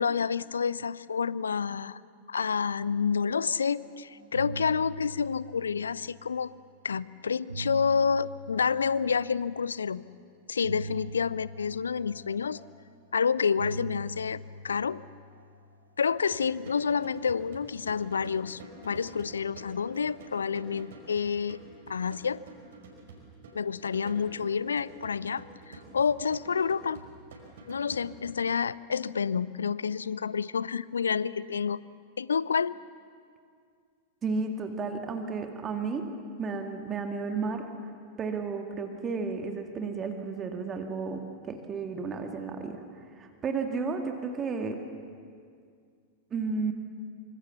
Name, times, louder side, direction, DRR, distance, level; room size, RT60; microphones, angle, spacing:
voice 1, 0.0-2.0 2.3-6.5 6.8-10.0 10.5-12.6 13.1-14.4 14.6-15.0 16.0-21.6 21.9-22.4 23.5-27.0 27.7-31.8 32.2-32.7, left 6 dB, 70° left, 20 dB, 0.5 m, -29 dB
sound 1, 3.7-3.9 4.2-6.5 7.2-9.6 10.6-13.1 13.6-16.1, right 2 dB, 80° right, 1.7 m, -42 dB
sound 2, 16.1-28.3, right 3 dB, 60° right, 5.4 m, -49 dB
voice 2, 34.2-37.7 38.2-44.8 46.3-46.7, right 4 dB, 25° right, 4 dB, 2.0 m, -33 dB
25.5 x 25.0 x 7.1 m, 2.2 s
figure-of-eight pair, 90°, 0 cm